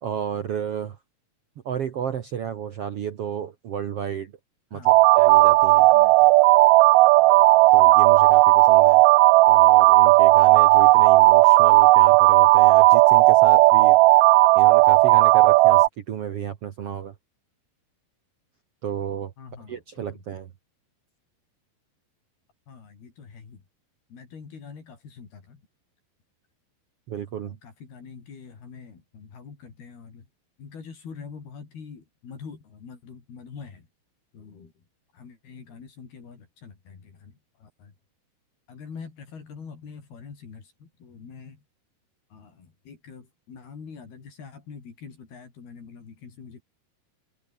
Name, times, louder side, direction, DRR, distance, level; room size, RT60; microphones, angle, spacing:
voice 1, 0.0-1.0 1.6-4.3 4.7-5.9 7.7-9.0 9.4-14.0 14.5-17.1 18.8-19.3 19.7-20.5 27.1-27.6, right 8 dB, 65° right, 1.5 m, -32 dB
voice 2, 4.7-5.1 5.8-6.3 7.4-7.5 19.4-20.2 22.7-23.6 24.1-25.6 27.5-30.3 30.6-33.9 34.3-34.7 35.1-37.9 38.7-41.6 42.3-46.6, left 5 dB, 75° left, 6.9 m, -44 dB
sound 1, 4.9-15.9, right 20 dB, 90° right, 1.9 m, -15 dB
omnidirectional pair, 4.5 m